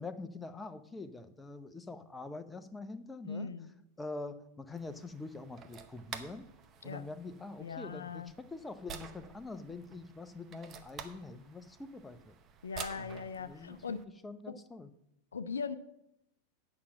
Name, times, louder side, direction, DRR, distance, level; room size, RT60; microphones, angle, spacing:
voice 1, 0.0-3.5 4.0-6.5 6.8-12.4 13.0-13.8 14.2-14.9, left 3 dB, 10° left, 9 dB, 0.6 m, -45 dB
voice 2, 3.2-3.7 6.8-7.1 7.6-8.3 12.6-14.1 14.5-14.6 15.3-15.8, left 5 dB, 70° left, 12 dB, 0.5 m, -40 dB
sound 1, 4.7-14.0, right 7 dB, 30° right, 0.8 m, -50 dB
8.6 x 5.9 x 7.4 m, 0.82 s
figure-of-eight pair, 90°, 0 cm